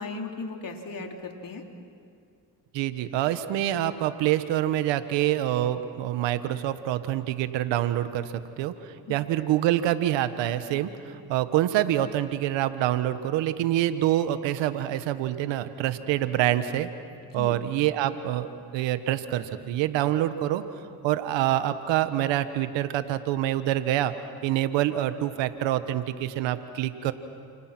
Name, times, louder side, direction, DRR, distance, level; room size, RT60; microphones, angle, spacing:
voice 1, 0.0-1.6 9.1-9.2 17.2-17.6, left 3 dB, 50° left, 3 dB, 3.6 m, -37 dB
voice 2, 2.7-16.9 17.3-18.5 18.7-20.6 21.0-24.1 24.4-27.1, right 13 dB, 90° right, 11 dB, 1.3 m, -26 dB
30.0 x 28.5 x 6.1 m, 2.3 s
supercardioid pair, 65°, 43 cm